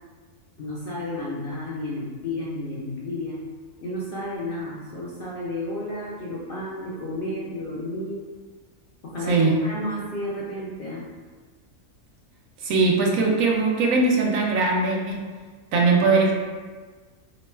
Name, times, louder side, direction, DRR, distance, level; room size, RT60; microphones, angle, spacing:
voice 1, 0.6-3.4 3.8-8.2 9.0-11.1, left 1 dB, 55° left, -7 dB, 0.6 m, -32 dB
voice 2, 12.6-15.2 15.7-16.3, right 3 dB, 75° right, -1 dB, 1.0 m, -20 dB
3.0 x 2.2 x 4.2 m, 1.4 s
omnidirectional pair, 1.5 m